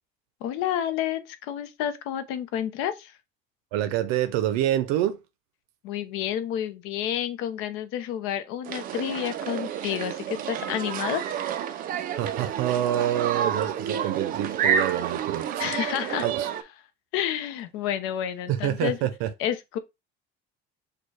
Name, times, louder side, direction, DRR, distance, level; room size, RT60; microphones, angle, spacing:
voice 1, 0.4-3.1 5.8-11.2 15.6-16.5 17.1-19.1 19.4-19.8, left 10 dB, 80° left, 0.7 m, -30 dB
voice 2, 3.7-5.2 12.1-15.6 16.2-16.5 18.5-19.3, right 12 dB, 90° right, 0.6 m, -27 dB
sound 1, 8.6-16.6, right 8 dB, 40° right, 0.5 m, -29 dB
6.6 x 2.3 x 3.2 m
cardioid pair, 160°, 21 cm